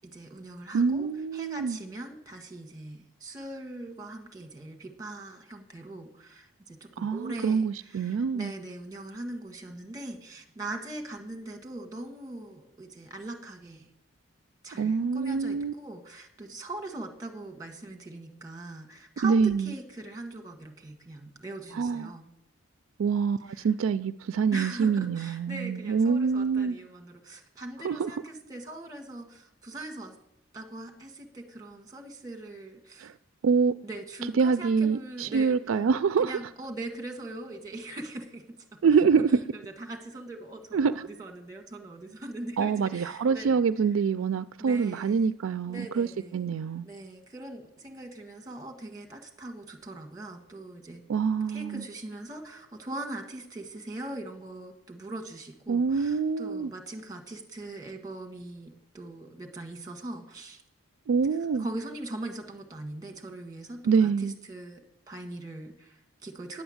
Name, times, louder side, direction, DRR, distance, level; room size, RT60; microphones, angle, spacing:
voice 1, 0.0-13.9 14.6-22.3 23.4-23.7 24.5-30.1 30.5-33.1 33.8-35.8 36.2-38.8 39.5-43.6 44.6-45.3 45.7-46.5 46.8-51.0 51.5-60.6 61.6-66.6, right 2 dB, 15° right, 1.5 m, -41 dB
voice 2, 0.7-1.8 7.0-8.5 14.8-15.7 19.2-19.7 21.7-22.1 23.0-26.8 27.8-28.1 33.0-33.1 33.4-33.7 34.4-36.3 38.8-39.4 40.7-40.9 42.6-46.1 46.3-46.8 51.1-51.8 55.7-56.7 61.1-61.6 63.8-64.3, right 5 dB, 70° right, 0.4 m, -25 dB
10.0 x 8.0 x 7.8 m
head